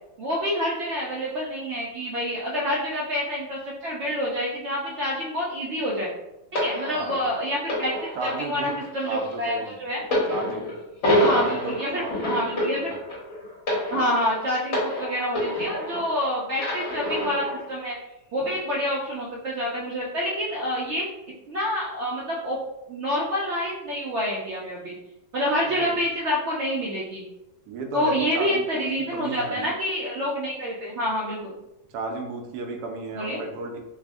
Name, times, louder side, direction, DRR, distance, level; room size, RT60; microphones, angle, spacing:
voice 1, 0.2-6.1 6.5-10.0 11.2-12.9 13.9-17.9 18.3-21.0 21.5-22.6 22.9-24.9 25.3-27.2 27.9-31.5 33.1-33.4, equal, 65° right, -4 dB, 0.7 m, -27 dB
sound 1, 6.5-16.2 16.6-17.6 18.4-18.6, left 1 dB, 55° left, 1.5 m, -27 dB
voice 2, 6.9-7.2 8.2-8.8 9.0-9.8 10.3-10.7 11.3-12.4 12.8-13.0 25.6-26.0 27.7-29.7 31.9-33.8, right 2 dB, 80° right, 3 dB, 1.1 m, -34 dB
3.4 x 2.1 x 3.4 m, 0.94 s
omnidirectional pair, 1.7 m